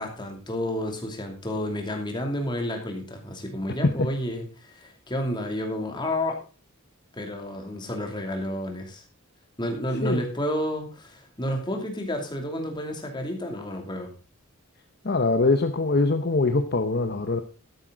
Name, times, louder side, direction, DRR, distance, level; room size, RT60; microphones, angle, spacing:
voice 1, 0.0-6.4 7.1-9.0 9.6-14.1, left 1 dB, 20° left, 2.7 m, -30 dB
voice 2, 15.0-17.4, left 3 dB, 45° left, 0.8 m, -23 dB
12.5 x 10.5 x 3.9 m
head